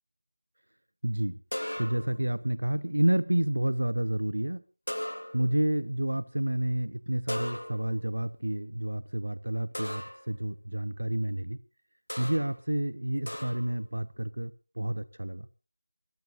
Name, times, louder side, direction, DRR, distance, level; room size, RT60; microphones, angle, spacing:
voice 1, 1.0-1.4 1.8-4.6 5.3-11.6 12.2-15.5, right 1 dB, 65° right, 16 dB, 0.8 m, -29 dB
sound 1, 1.5-2.3 4.9-5.6 7.3-8.1 9.7-10.3 12.1-12.6 13.3-13.8, left 1 dB, 75° left, 2.6 m, -37 dB
29.0 x 14.0 x 2.6 m, 0.34 s
figure-of-eight pair, 170°, 0 cm